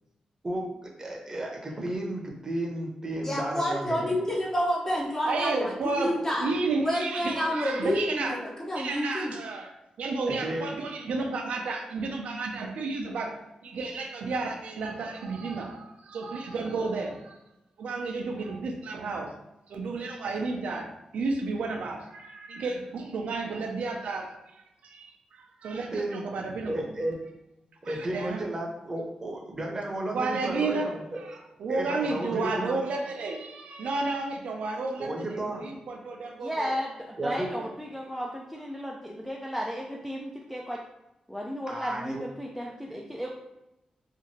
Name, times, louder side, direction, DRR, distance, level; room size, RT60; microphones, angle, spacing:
voice 1, 0.4-4.1 10.3-10.7 25.9-26.3 26.7-27.2 27.9-31.2 31.7-32.8 35.0-35.6 37.2-37.5 41.7-42.2, right 1 dB, 25° right, 0 dB, 0.7 m, -33 dB
voice 2, 3.2-6.5 6.8-9.3, equal, 25° left, -3 dB, 0.8 m, -29 dB
voice 3, 5.2-8.4 8.8-9.7 10.0-13.3 13.6-17.4 17.8-19.3 19.7-26.9 27.8-28.4 30.1-36.8 37.6-37.7, right 3 dB, 90° right, 2 dB, 0.4 m, -32 dB
voice 4, 36.4-36.9 37.2-40.8 41.3-43.3, equal, ahead, -2 dB, 0.3 m, -34 dB
2.8 x 2.5 x 2.7 m, 0.92 s
wide cardioid pair, 100°, 2 cm